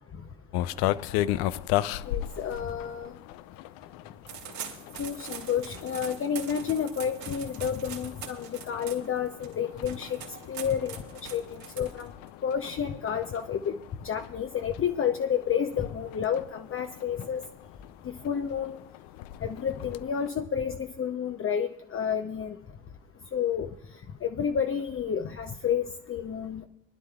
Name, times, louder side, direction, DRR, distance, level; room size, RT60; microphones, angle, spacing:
sound 1, 0.5-20.3, left 14 dB, 65° left, 0.5 m, -37 dB
voice 1, 2.0-3.1 5.0-10.2 10.5-11.0 11.3-12.1 12.4-13.8 14.0-17.4 18.0-18.8 19.4-22.6 23.3-23.7 24.2-26.7, left 8 dB, 35° left, 6 dB, 0.7 m, -30 dB
sound 2, 4.3-12.3, right 8 dB, 60° right, 2.5 m, -43 dB
24.5 x 11.0 x 2.4 m, 0.79 s
hypercardioid pair, 60°, 40 cm